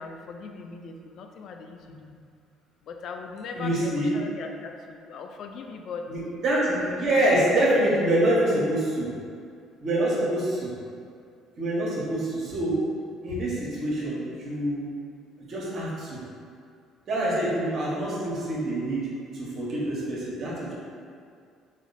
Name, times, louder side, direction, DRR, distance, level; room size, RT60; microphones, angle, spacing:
voice 1, 0.0-2.1 2.8-6.1, left 4 dB, 60° left, 4 dB, 0.3 m, -39 dB
voice 2, 3.6-4.1 6.1-9.1 9.8-10.7 11.6-12.8 13.2-14.8 15.5-16.2 17.1-20.7, right 1 dB, 50° right, -6 dB, 1.3 m, -26 dB
4.2 x 2.4 x 4.0 m, 2.3 s
hypercardioid pair, 55°, 0 cm